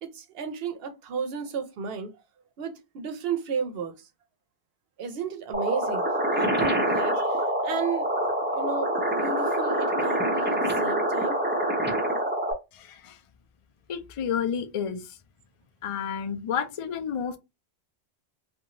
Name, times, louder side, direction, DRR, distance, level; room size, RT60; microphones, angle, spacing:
voice 1, 0.0-2.1 2.6-4.1 5.0-6.1 6.3-8.1 8.5-11.4, right 6 dB, 70° right, 0.8 m, -33 dB
sound 1, 5.5-12.5, right 1 dB, 15° right, 0.4 m, -26 dB
voice 2, 12.7-13.2 13.9-15.2 15.8-17.4, left 7 dB, 60° left, 0.3 m, -31 dB
2.5 x 2.3 x 2.9 m
omnidirectional pair, 1.1 m